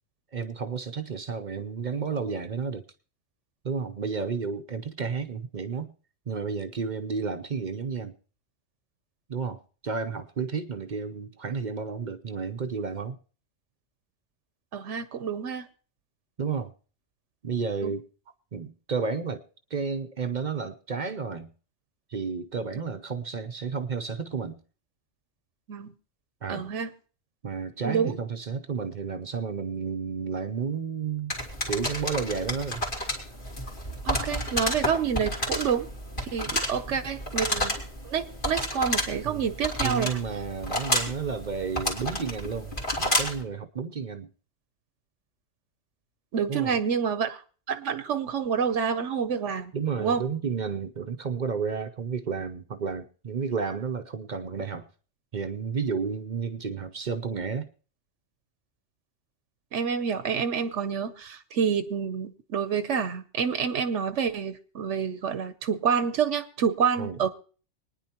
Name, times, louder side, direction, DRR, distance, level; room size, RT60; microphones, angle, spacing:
voice 1, 0.3-2.8 3.6-5.9 6.3-8.1 9.3-13.2 16.4-16.7 17.4-18.1 18.5-19.4 19.7-21.5 22.1-24.6 26.4-26.7 27.4-31.3 31.7-32.8 36.5-36.6 36.9-37.0 39.2-39.5 39.8-44.3 46.5-46.8 49.7-54.9 55.3-57.7 67.0-67.2, right 5 dB, 45° right, 7 dB, 0.7 m, -32 dB
voice 2, 14.7-15.7 17.8-17.9 25.7-25.9 26.5-26.9 27.8-28.1 34.0-35.9 36.2-37.7 38.0-40.1 46.3-47.4 47.7-49.7 50.0-50.2 59.7-67.3, right 7 dB, 80° right, 11 dB, 1.1 m, -28 dB
sound 1, 31.3-43.4, left 1 dB, 45° left, 2.8 m, -31 dB
25.0 x 9.9 x 2.9 m, 0.39 s
omnidirectional pair, 1.2 m